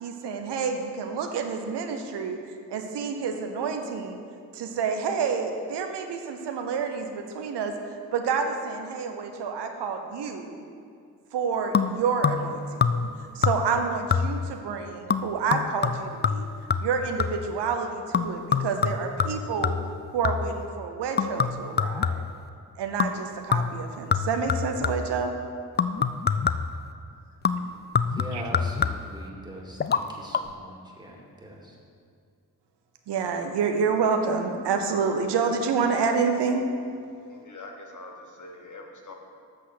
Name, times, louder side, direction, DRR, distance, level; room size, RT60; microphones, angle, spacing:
voice 1, 0.0-4.2 4.5-10.6 11.3-13.1 13.3-16.5 16.8-19.8 20.1-22.3 22.8-25.3 28.3-28.4 33.1-36.6, right 5 dB, 80° right, 5 dB, 0.8 m, -28 dB
sound 1, 11.7-12.5 12.8-13.2 13.4-13.8 14.1-14.5 15.1-17.5 18.1-20.6 21.2-22.4 23.0-23.2 23.5-25.2 25.8-26.8 27.4-29.2 29.8-30.0 30.3-30.4, left 6 dB, 25° left, 0.4 m, -26 dB
voice 2, 28.1-31.8, equal, 10° right, -2 dB, 2.2 m, -41 dB
voice 3, 37.3-39.1, left 2 dB, 45° left, 2 dB, 1.4 m, -44 dB
7.6 x 6.3 x 5.9 m, 2.3 s
supercardioid pair, 45°, 41 cm